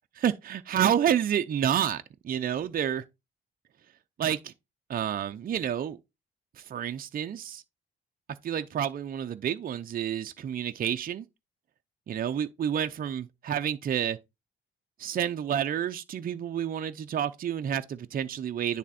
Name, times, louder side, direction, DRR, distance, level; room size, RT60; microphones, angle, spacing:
voice 1, 0.2-3.0 4.2-4.5 4.9-6.0 6.6-7.6 8.4-11.3 12.1-14.2 15.0-18.8, right 9 dB, 45° right, 0.6 m, -29 dB
9.9 x 3.5 x 4.2 m
cardioid pair, 90°, 20 cm